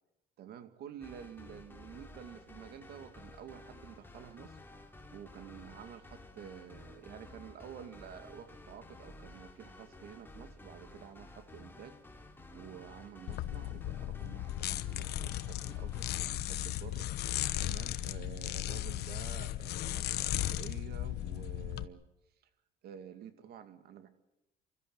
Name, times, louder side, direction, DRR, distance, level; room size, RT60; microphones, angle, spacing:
voice 1, 0.4-12.0 12.5-22.1 22.8-24.1, right 9 dB, 70° right, 10 dB, 2.4 m, -50 dB
sound 1, 1.0-16.3, left 2 dB, 10° left, 2.8 m, -53 dB
sound 2, 13.3-21.8, left 14 dB, 75° left, 1.0 m, -36 dB
27.5 x 13.5 x 9.5 m, 0.94 s
cardioid pair, 110°, 17 cm